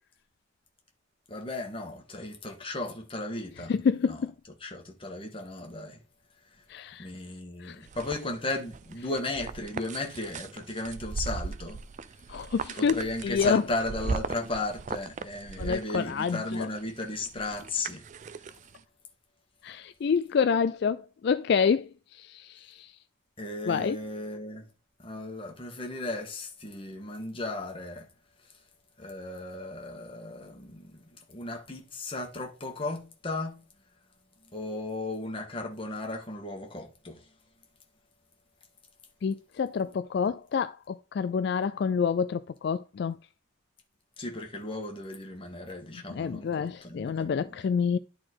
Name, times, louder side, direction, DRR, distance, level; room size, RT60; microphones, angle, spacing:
voice 1, 1.3-3.7 4.1-4.2 4.6-6.0 6.5-6.6 7.0-11.8 12.3-12.4 12.8-18.1 18.4-18.5 23.4-24.7 25.0-28.1 28.4-28.6 29.0-33.6 34.5-37.3 44.2-47.6, left 2 dB, 25° left, 1.7 m, -35 dB
voice 2, 3.7-4.3 6.7-7.1 7.6-7.9 12.3-13.6 15.6-16.7 19.6-23.0 23.7-24.0 39.2-43.2 46.1-48.0, left 6 dB, 55° left, 0.3 m, -28 dB
sound 1, 7.9-18.8, right 4 dB, 35° right, 0.4 m, -38 dB
10.5 x 4.2 x 4.6 m
head